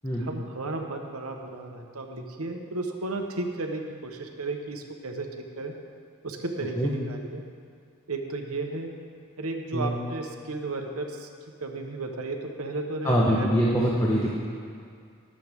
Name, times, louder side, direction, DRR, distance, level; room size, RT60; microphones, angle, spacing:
voice 1, 0.2-5.3 5.6-5.7 6.2-7.4 8.1-8.9 9.4-11.3 11.6-13.5, right 2 dB, 85° right, 3 dB, 1.2 m, -34 dB
voice 2, 13.0-14.3, equal, 15° left, -5 dB, 1.2 m, -23 dB
22.0 x 7.7 x 3.7 m, 2.3 s
head